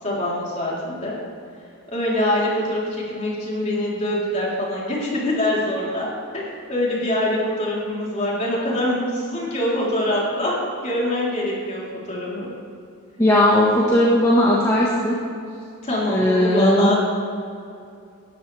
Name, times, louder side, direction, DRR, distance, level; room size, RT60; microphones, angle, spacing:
voice 1, 0.0-1.2 1.9-6.1 6.3-12.5 15.8-17.0, left 1 dB, 35° left, -5 dB, 3.9 m, -24 dB
voice 2, 13.2-15.1 16.1-16.9, left 1 dB, 15° left, -6 dB, 1.7 m, -17 dB
18.0 x 14.0 x 3.5 m, 2.4 s
head